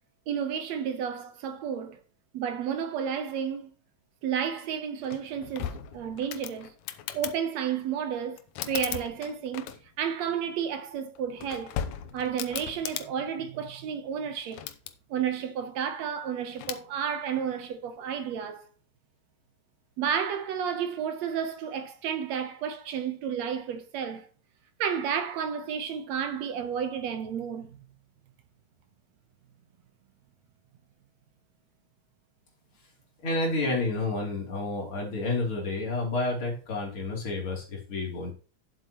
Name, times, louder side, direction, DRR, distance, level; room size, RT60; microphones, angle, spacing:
voice 1, 0.3-2.0 2.3-3.7 4.2-6.7 7.1-8.4 8.7-11.8 12.1-14.7 15.1-18.7 20.0-24.3 24.8-27.8, right 8 dB, 70° right, 2.0 m, -31 dB
sound 1, 5.0-7.4 8.4-10.1 11.1-13.1 14.4-14.9 16.6-16.9, left 10 dB, 75° left, 2.1 m, -37 dB
voice 2, 33.2-38.3, left 2 dB, 40° left, 3.9 m, -30 dB
10.0 x 7.9 x 3.0 m
omnidirectional pair, 3.5 m